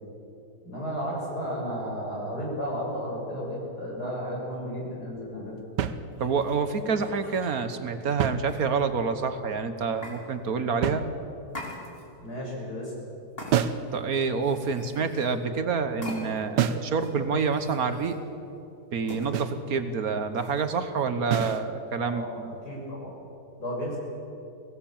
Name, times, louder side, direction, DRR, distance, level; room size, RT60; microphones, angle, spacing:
voice 1, 0.6-5.6 12.2-12.9 22.0-22.3 22.6-23.1 23.6-24.0, equal, 70° left, -3 dB, 6.8 m, -33 dB
sound 1, 5.3-5.4 6.1-7.6 8.4-9.1 10.0-10.2 11.5-12.3 13.4-14.0 14.3-15.4 16.0-16.5 16.9-18.2 19.1-19.3 20.4-20.8, left 1 dB, 35° left, 3.5 m, -43 dB
sound 2, 5.8-6.6 8.0-9.0 10.8-11.6 13.5-13.9 16.6-17.0 19.3-19.7 21.3-21.7, right 9 dB, 90° right, 1.5 m, -29 dB
voice 2, 6.2-11.0 13.9-18.1 18.9-22.5, right 5 dB, 60° right, 9 dB, 1.5 m, -27 dB
23.5 x 17.5 x 7.2 m, 2.9 s
omnidirectional pair, 1.8 m